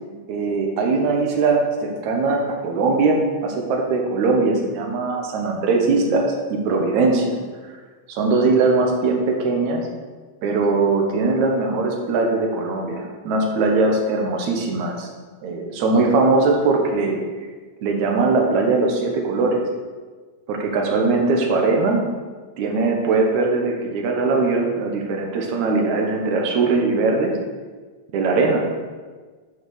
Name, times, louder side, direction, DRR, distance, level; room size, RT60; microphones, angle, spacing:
voice 1, 0.3-6.3 6.5-7.3 8.1-9.8 10.4-15.1 15.4-17.2 17.8-19.6 20.5-22.0 22.6-27.3 28.1-28.6, right 3 dB, 70° right, 1 dB, 2.3 m, -20 dB
7.2 x 4.8 x 6.3 m, 1.4 s
omnidirectional pair, 3.8 m